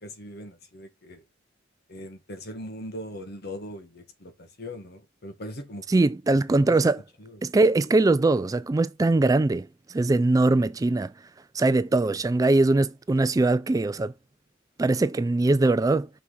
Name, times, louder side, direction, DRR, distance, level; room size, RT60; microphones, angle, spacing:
voice 1, 0.0-1.2 1.9-5.8 6.6-6.7 7.2-7.4, left 1 dB, 55° left, 1.7 m, -40 dB
voice 2, 5.9-7.0 7.4-11.1 11.5-14.1 14.8-16.1, right 2 dB, 20° right, 0.3 m, -22 dB
6.1 x 5.9 x 4.0 m
head